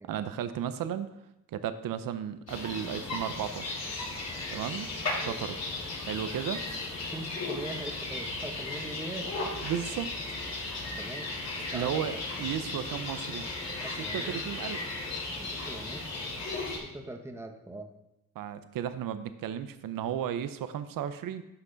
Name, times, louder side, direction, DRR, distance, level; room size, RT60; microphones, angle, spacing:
voice 1, 0.1-1.1 1.5-3.8 4.5-4.9 5.2-5.6 6.1-6.6 9.6-10.4 11.7-12.1 12.4-13.5 14.1-14.8 18.4-21.4, right 9 dB, 70° right, 11 dB, 0.7 m, -34 dB
sound 1, 2.5-16.8, left 2 dB, 45° left, 3.6 m, -36 dB
voice 2, 7.0-9.5 11.0-12.0 13.8-14.4 15.3-16.1 16.8-17.9, right 1 dB, 5° right, 5 dB, 1.0 m, -42 dB
11.0 x 6.0 x 3.9 m, 0.87 s
cardioid pair, 90°, 35 cm